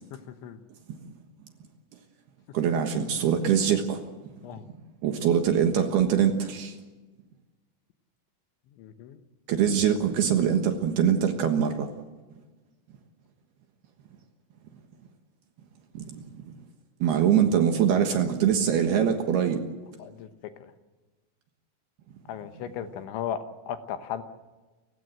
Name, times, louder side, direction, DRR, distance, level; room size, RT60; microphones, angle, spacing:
voice 1, 0.3-0.6 4.4-4.6 8.8-9.2 20.0-20.3 22.3-24.2, left 9 dB, 75° left, 9 dB, 3.3 m, -36 dB
voice 2, 2.5-4.0 5.0-6.8 9.5-11.9 15.9-16.5 17.0-19.6, right 8 dB, 65° right, 5 dB, 2.9 m, -23 dB
29.5 x 16.0 x 7.9 m, 1.2 s
omnidirectional pair, 5.8 m